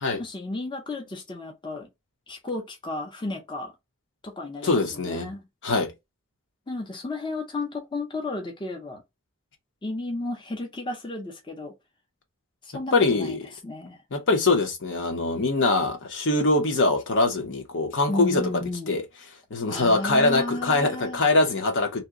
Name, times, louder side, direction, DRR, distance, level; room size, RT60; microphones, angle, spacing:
voice 1, 0.2-1.9 2.3-3.7 4.2-5.4 6.7-9.0 9.8-11.7 12.6-13.4 13.6-14.0 18.1-19.0 19.7-21.2, left 2 dB, 20° left, 0.6 m, -33 dB
voice 2, 4.6-5.3 5.6-5.9 12.9-13.5 14.1-19.0 19.5-22.0, left 2 dB, 60° left, 0.8 m, -23 dB
2.8 x 2.1 x 3.5 m
head